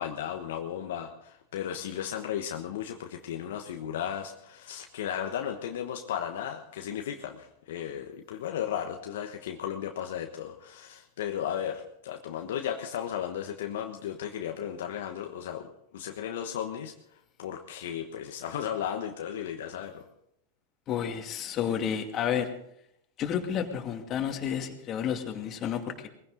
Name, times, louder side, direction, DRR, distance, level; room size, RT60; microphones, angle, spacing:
voice 1, 0.0-16.9 17.4-20.0, left 9 dB, 70° left, 4 dB, 1.3 m, -35 dB
voice 2, 20.9-22.5 23.2-26.1, left 8 dB, 40° left, 4 dB, 2.4 m, -31 dB
21.0 x 16.0 x 3.9 m, 0.75 s
hypercardioid pair, 100°, 0 cm